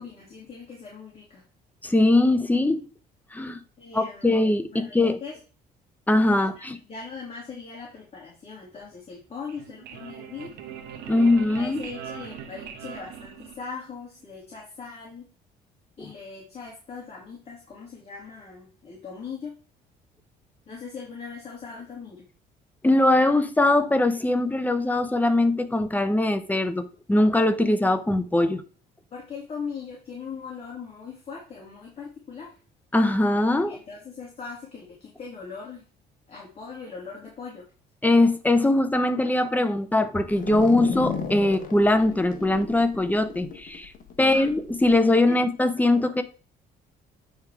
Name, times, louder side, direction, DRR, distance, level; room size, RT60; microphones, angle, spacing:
voice 1, 0.0-1.4 3.8-4.4 4.7-5.3 6.3-10.5 11.5-15.3 16.0-19.5 20.7-22.3 29.1-32.5 33.6-35.8 36.3-37.6 44.2-44.5 45.3-45.4, left 5 dB, 35° left, 2.5 m, -40 dB
voice 2, 1.8-2.8 3.3-3.6 3.9-5.2 6.1-6.8 11.1-11.8 16.0-16.1 22.8-28.6 32.9-33.8 38.0-43.9 44.2-46.2, left 2 dB, 10° left, 0.8 m, -21 dB
sound 1, 9.3-14.0, right 8 dB, 85° right, 1.2 m, -41 dB
sound 2, 40.3-45.0, left 6 dB, 55° left, 1.2 m, -35 dB
8.8 x 3.6 x 4.7 m
cardioid pair, 110°, 17 cm